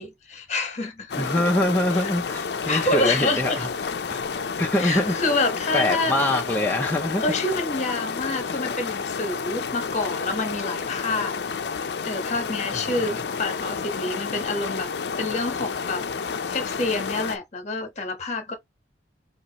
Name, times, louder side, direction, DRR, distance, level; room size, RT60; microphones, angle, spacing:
voice 1, 0.0-1.3 1.9-2.1 2.7-3.6 4.8-6.1 7.2-11.4 12.0-14.9 15.2-16.0 16.5-18.5, left 2 dB, 40° left, 1.1 m, -27 dB
sound 1, 1.1-17.4, left 5 dB, 65° left, 0.5 m, -30 dB
voice 2, 1.2-5.2 5.7-7.4 12.7-12.8 13.1-13.2, left 1 dB, 10° left, 0.5 m, -25 dB
5.2 x 2.5 x 2.9 m
head